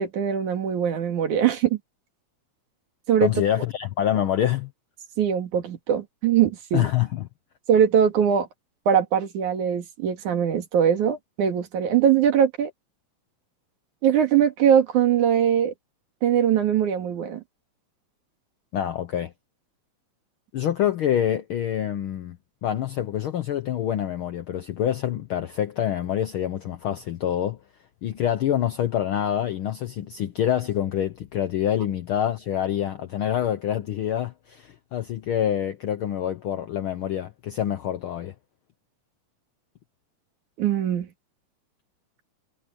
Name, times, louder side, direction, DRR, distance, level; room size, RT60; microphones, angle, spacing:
voice 1, 0.0-1.8 3.1-3.3 5.2-6.9 7.7-8.5 8.9-12.7 14.0-15.7 16.2-17.4 40.6-41.1, right 8 dB, 90° right, 3.5 m, -21 dB
voice 2, 3.2-4.7 6.7-7.2 18.7-19.3 20.5-27.6 28.0-38.3, left 10 dB, 75° left, 1.2 m, -26 dB
omnidirectional pair, 3.3 m